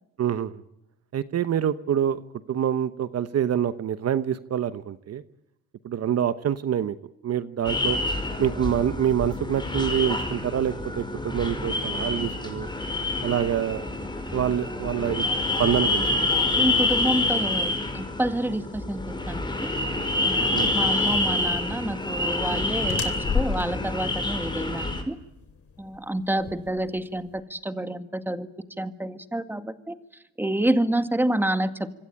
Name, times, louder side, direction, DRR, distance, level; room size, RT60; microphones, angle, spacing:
voice 1, 0.2-0.6 1.1-2.2 2.5-5.2 5.8-7.0 7.2-8.0 8.4-12.7 13.2-13.8 14.3-15.3 15.6-16.0 16.3-16.4 20.5-20.7, right 9 dB, 55° right, 13 dB, 1.0 m, -26 dB
sound 1, 7.6-25.0, left 2 dB, 15° left, 5.2 m, -27 dB
voice 2, 16.6-19.7 20.2-25.2 25.8-28.5 28.8-30.0 30.4-31.9, right 1 dB, 5° right, 9 dB, 2.0 m, -28 dB
sound 2, 21.3-27.4, left 6 dB, 50° left, 3.1 m, -34 dB
26.5 x 23.5 x 8.9 m, 0.89 s
cardioid pair, 90°, 30 cm